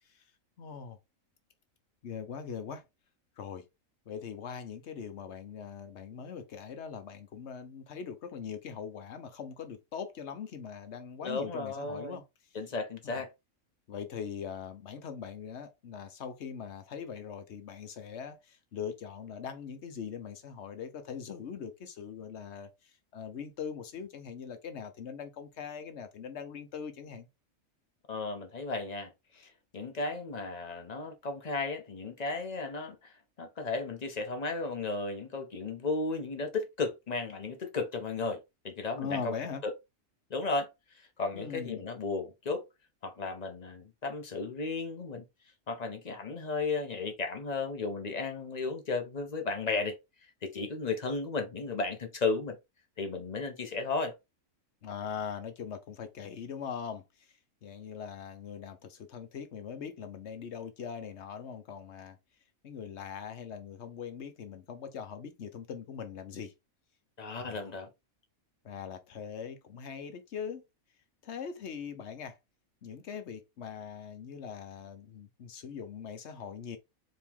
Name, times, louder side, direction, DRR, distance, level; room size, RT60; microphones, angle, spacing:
voice 1, 0.6-1.0 2.0-2.8 3.4-3.6 4.1-12.2 13.0-13.2 13.9-27.3 39.0-39.6 41.3-41.8 54.8-57.3 57.6-62.2 62.6-66.5 67.4-67.7 68.6-70.6 71.2-72.4 72.8-76.8, left 7 dB, 55° left, 1.1 m, -41 dB
voice 2, 11.2-12.2 12.5-13.3 28.1-39.3 39.6-39.7 40.3-40.7 40.9-42.7 43.0-45.2 45.7-50.0 50.4-52.6 53.0-54.1 67.2-67.9, left 3 dB, 35° left, 0.9 m, -34 dB
4.5 x 3.1 x 3.5 m
omnidirectional pair, 1.4 m